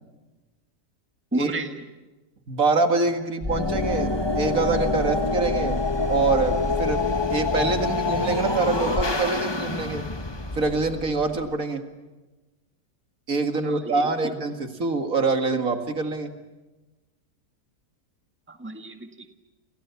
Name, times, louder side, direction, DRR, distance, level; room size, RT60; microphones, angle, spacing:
voice 1, 1.3-1.8 13.6-14.3 18.5-19.3, right 2 dB, 5° right, 5 dB, 1.7 m, -32 dB
voice 2, 2.5-5.8 6.1-7.0 7.3-10.0 10.5-11.8 13.3-16.3, right 3 dB, 55° right, 6 dB, 2.4 m, -25 dB
sound 1, 3.4-11.5, left 3 dB, 15° left, 1.2 m, -26 dB
30.0 x 28.0 x 7.0 m, 1.1 s
omnidirectional pair, 1.7 m